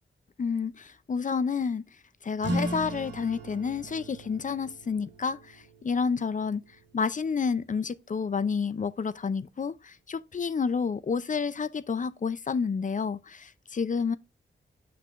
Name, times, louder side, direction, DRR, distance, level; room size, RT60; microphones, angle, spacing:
voice 1, 0.4-1.8 2.2-6.6 6.9-14.2, left 5 dB, 40° left, 0.5 m, -30 dB
sound 1, 2.4-7.5, right 1 dB, 70° right, 2.7 m, -38 dB
8.0 x 6.0 x 2.5 m
wide cardioid pair, 115°, 20 cm